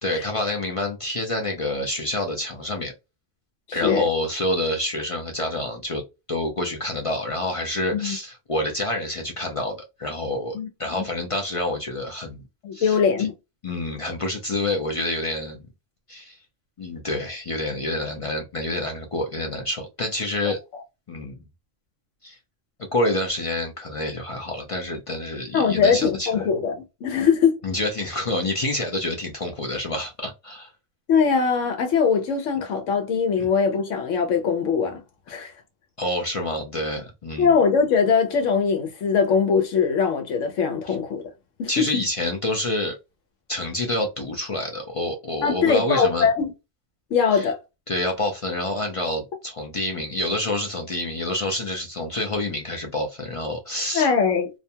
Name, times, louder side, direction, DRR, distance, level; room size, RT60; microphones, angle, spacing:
voice 1, 0.0-2.9 3.7-6.0 6.3-12.4 12.7-13.3 13.6-15.6 16.1-16.4 16.8-20.6 21.1-21.4 22.2-22.4 22.9-26.3 27.6-30.7 33.4-33.5 36.0-37.5 40.9-41.0 41.7-43.0 43.5-46.3 47.3-47.5 47.9-54.1, left 1 dB, 45° left, 0.4 m, -27 dB
voice 2, 3.7-4.1 7.9-8.2 10.5-10.7 11.0-11.1 12.6-13.3 25.5-26.8 27.0-27.6 31.1-35.0 35.3-35.5 37.4-41.2 41.6-41.9 45.4-46.5 47.1-47.6 53.9-54.5, left 6 dB, 85° left, 1.0 m, -21 dB
2.5 x 2.2 x 2.7 m
omnidirectional pair, 1.2 m